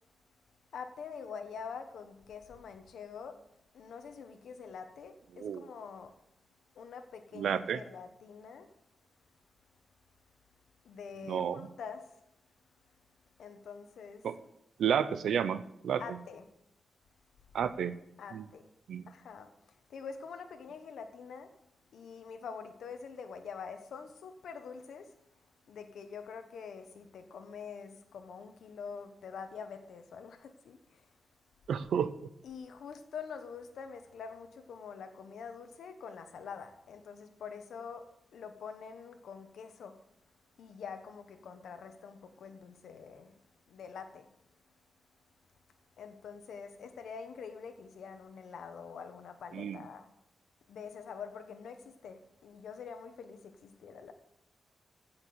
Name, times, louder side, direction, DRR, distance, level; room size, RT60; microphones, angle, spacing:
voice 1, 0.7-3.4 3.7-6.1 6.7-8.7 10.8-12.2 13.4-14.2 16.0-16.5 18.2-18.7 19.1-21.5 21.9-25.1 25.7-31.1 32.4-40.0 40.6-43.4 43.7-44.3 46.0-50.1 50.7-54.1, left 6 dB, 85° left, 1.1 m, -45 dB
voice 2, 7.4-7.8 11.3-11.6 14.2-14.3 14.8-16.0 17.5-17.9 18.3-18.4 18.9-19.1 31.7-32.1 49.5-49.8, right 8 dB, 85° right, 0.6 m, -31 dB
15.5 x 5.9 x 6.8 m
wide cardioid pair, 170°, 0 cm